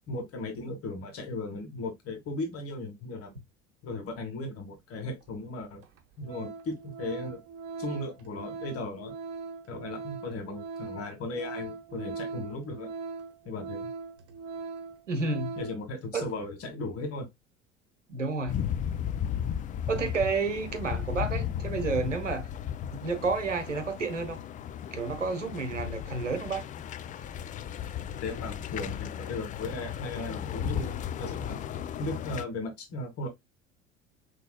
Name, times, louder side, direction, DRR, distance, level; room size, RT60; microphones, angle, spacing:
voice 1, 0.1-3.4 3.8-5.8 6.2-7.4 7.8-9.1 9.7-12.9 13.5-13.9 15.6-17.3 28.2-31.6 32.0-33.3, left 2 dB, 40° left, 1.8 m, -36 dB
Organ, 5.2-5.3 5.8-6.0 6.2-15.8 16.2-16.3, right 4 dB, 40° right, 1.3 m, -40 dB
voice 2, 15.1-15.5 16.1-16.2 18.1-18.6 19.9-22.5 22.9-24.4 24.9-26.6, right 4 dB, 85° right, 0.9 m, -30 dB
sound 1, 18.5-32.4, left 9 dB, 25° left, 0.4 m, -35 dB
6.0 x 3.1 x 2.2 m
figure-of-eight pair, 65°, 36 cm